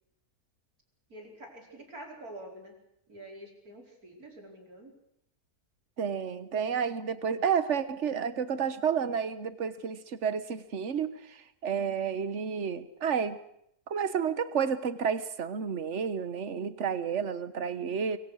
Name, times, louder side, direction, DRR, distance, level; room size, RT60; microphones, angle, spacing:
voice 1, 1.1-2.8 3.1-5.0, right 1 dB, 70° right, 1 dB, 5.5 m, -47 dB
voice 2, 6.0-13.4 13.9-18.2, right 7 dB, 50° right, 13 dB, 1.6 m, -31 dB
24.5 x 24.0 x 6.4 m, 0.74 s
omnidirectional pair, 1.6 m